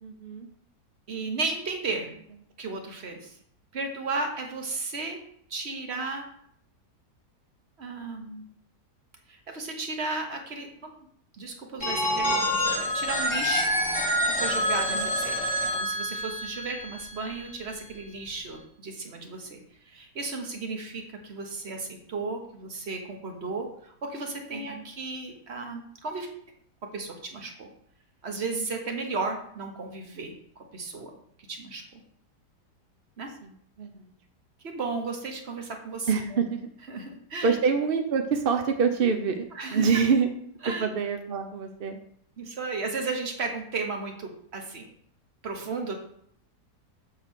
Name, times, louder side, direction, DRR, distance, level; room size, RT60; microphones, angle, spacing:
voice 1, 0.0-0.5 14.9-15.1 24.5-24.9 33.4-33.5 33.8-34.1 36.1-36.7 37.4-39.4 39.7-40.3 40.8-42.0, right 5 dB, 65° right, 5 dB, 0.5 m, -26 dB
voice 2, 1.1-2.1 2.6-3.3 3.7-5.2 5.5-6.3 7.8-8.4 9.3-10.9 11.4-13.7 14.2-15.4 15.7-19.6 19.8-26.3 26.9-27.7 28.2-31.1 31.5-32.0 33.2-33.3 34.7-36.1 36.9-37.5 39.5-39.9 40.6-40.9 42.4-44.9 45.4-45.9, right 3 dB, 40° right, 3 dB, 1.3 m, -34 dB
Telephone, 11.8-17.6, equal, 20° left, 1.5 m, -27 dB
7.2 x 3.9 x 6.2 m, 0.66 s
omnidirectional pair, 1.8 m